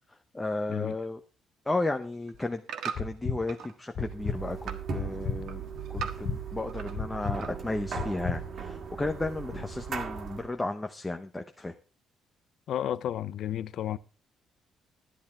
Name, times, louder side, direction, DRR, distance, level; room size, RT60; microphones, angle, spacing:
voice 1, 0.3-1.2 1.7-2.6 3.0-5.6 5.9-11.7, left 2 dB, 10° left, 0.7 m, -33 dB
sound 1, 1.9-3.7 4.1-4.9 5.2-7.0 7.2-7.8 8.3-8.4, right 8 dB, 75° right, 1.4 m, -40 dB
sound 2, 3.0-3.4 4.0-4.4 5.0-5.4 6.0-6.4 7.0-7.4 8.0-8.4, left 5 dB, 45° left, 1.6 m, -31 dB
sound 3, 4.0-10.5, right 6 dB, 45° right, 1.8 m, -38 dB
voice 2, 12.7-14.0, left 11 dB, 65° left, 0.5 m, -32 dB
11.0 x 11.0 x 4.4 m
cardioid pair, 145°, 0 cm